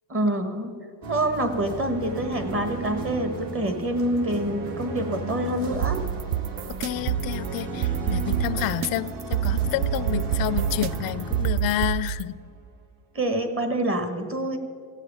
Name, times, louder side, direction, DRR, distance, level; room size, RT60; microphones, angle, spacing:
voice 1, 0.1-0.7 1.1-6.0 13.1-14.6, right 1 dB, 25° right, 7 dB, 1.6 m, -26 dB
sound 1, 1.0-11.5, right 3 dB, 40° right, 1.8 m, -39 dB
sound 2, 1.3-12.6, right 2 dB, 60° right, 1.9 m, -37 dB
sound 3, 5.7-12.2, right 10 dB, 80° right, 0.7 m, -27 dB
voice 2, 6.8-12.4, left 13 dB, 45° left, 15 dB, 0.5 m, -29 dB
16.5 x 8.2 x 8.4 m, 2.2 s
cardioid pair, 140°, 50 cm